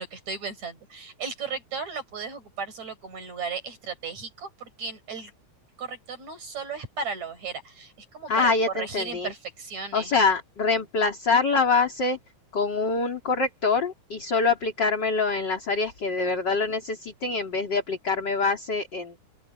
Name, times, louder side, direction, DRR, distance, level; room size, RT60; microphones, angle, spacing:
voice 1, 0.0-5.3 5.8-10.1, right 5 dB, 65° right, 6.8 m, -35 dB
voice 2, 8.3-9.3 9.9-12.2 12.5-19.2, left 4 dB, 35° left, 3.8 m, -25 dB
open air
omnidirectional pair, 3.5 m